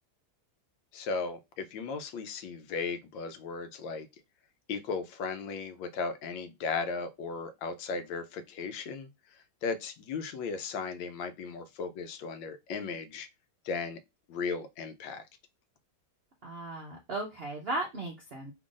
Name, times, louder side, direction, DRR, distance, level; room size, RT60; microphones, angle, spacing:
voice 1, 0.9-4.1 4.7-9.1 9.6-13.3 13.6-14.0 14.3-15.3, left 4 dB, 85° left, 1.4 m, -36 dB
voice 2, 16.4-18.5, right 2 dB, 65° right, 0.6 m, -36 dB
3.4 x 2.5 x 3.6 m
omnidirectional pair, 2.0 m